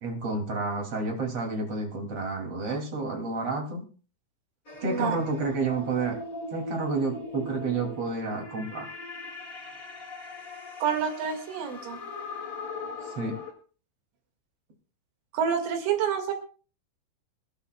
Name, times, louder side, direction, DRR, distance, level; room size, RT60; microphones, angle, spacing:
voice 1, 0.0-3.9 4.8-6.2 6.5-8.9 13.2-13.4, right 3 dB, 40° right, 1 dB, 2.8 m, -30 dB
sound 1, 4.6-13.5, left 2 dB, 40° left, 1.2 m, -40 dB
voice 2, 4.8-5.2 10.8-12.0 15.3-16.3, right 7 dB, 80° right, 4 dB, 4.4 m, -28 dB
25.0 x 11.5 x 2.2 m, 0.38 s
omnidirectional pair, 5.5 m